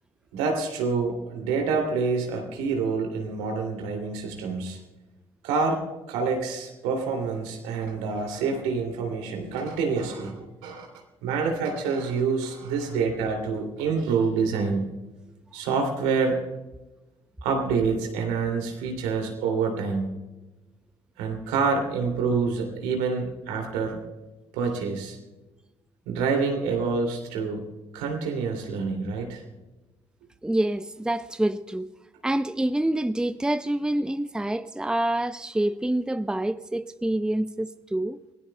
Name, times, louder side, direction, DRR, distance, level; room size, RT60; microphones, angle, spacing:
voice 1, 0.3-4.8 5.4-5.8 6.1-10.9 11.2-14.8 15.5-16.4 17.4-20.1 21.2-24.0 24.5-25.2 26.1-27.6 27.9-29.4, right 5 dB, 75° right, 2.7 m, -27 dB
voice 2, 30.4-31.9 32.2-38.2, right 1 dB, 5° right, 0.7 m, -27 dB
28.5 x 17.5 x 2.3 m
hypercardioid pair, 45°, 13 cm